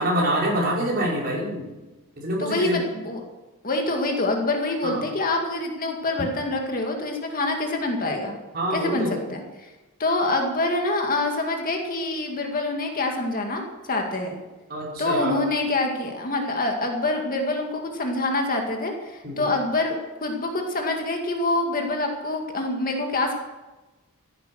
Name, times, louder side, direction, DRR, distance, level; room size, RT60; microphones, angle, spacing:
voice 1, 0.0-1.7 2.2-2.8 4.8-5.0 8.5-9.2 14.7-15.4 19.2-19.4, right 1 dB, 45° right, -4 dB, 5.4 m, -25 dB
voice 2, 2.4-3.2 3.6-8.4 8.7-9.7 10.0-13.6 13.9-14.4 15.0-23.3, left 2 dB, 40° left, 2 dB, 2.1 m, -26 dB
14.5 x 11.0 x 6.4 m, 1.1 s
head